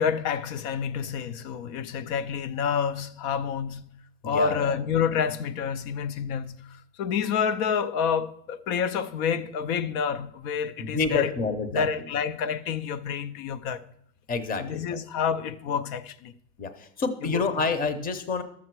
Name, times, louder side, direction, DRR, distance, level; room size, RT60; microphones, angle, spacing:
voice 1, 0.0-3.9 4.2-6.6 7.0-11.3 11.7-13.8 14.6-16.3 17.2-17.4, left 7 dB, 80° left, 0.7 m, -28 dB
voice 2, 4.2-4.8 10.8-12.1 14.3-15.0 16.6-18.4, left 4 dB, 20° left, 0.7 m, -28 dB
12.0 x 7.2 x 4.6 m
cardioid pair, 150°, 41 cm